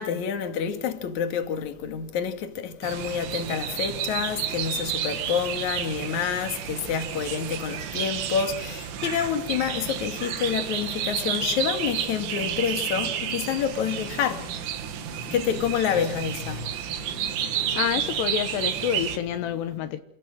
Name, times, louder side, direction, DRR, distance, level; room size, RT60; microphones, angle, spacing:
voice 1, 0.0-17.8 19.8-19.9, left 7 dB, 50° left, 3.0 m, -28 dB
sound 1, 2.8-19.2, right 10 dB, 75° right, 3.8 m, -31 dB
voice 2, 17.8-20.0, left 10 dB, 80° left, 3.2 m, -28 dB
28.5 x 15.5 x 7.7 m
omnidirectional pair, 5.1 m